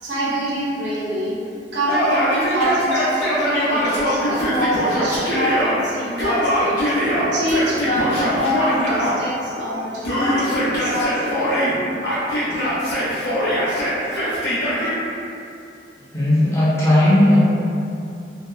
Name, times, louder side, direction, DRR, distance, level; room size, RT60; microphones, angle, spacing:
voice 1, 0.0-1.4 1.7-6.8 7.3-11.5, equal, 70° right, -8 dB, 0.6 m, -25 dB
Yell, 1.9-5.7 6.2-9.1 10.0-11.7 12.0-14.9, equal, 70° left, 0.7 m, -21 dB
voice 2, 16.1-17.4, left 1 dB, 15° left, -9 dB, 0.5 m, -15 dB
2.7 x 2.0 x 2.2 m, 2.6 s
head